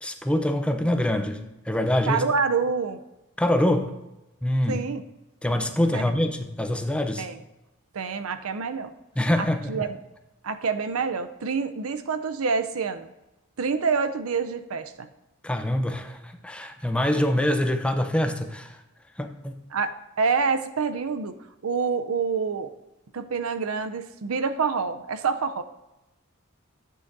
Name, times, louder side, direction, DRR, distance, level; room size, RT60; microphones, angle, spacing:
voice 1, 0.0-2.2 3.4-3.9 4.4-4.8 5.4-7.3 9.2-9.9 15.4-18.8 19.2-19.5, left 1 dB, 5° left, 6 dB, 0.6 m, -25 dB
voice 2, 2.1-3.0 4.7-5.0 5.9-6.0 7.2-7.4 7.9-8.9 9.4-9.9 10.4-13.1 13.6-15.1 19.7-21.3 21.6-22.7 23.1-25.6, right 5 dB, 80° right, 10 dB, 0.6 m, -27 dB
13.0 x 8.4 x 2.7 m, 0.98 s
head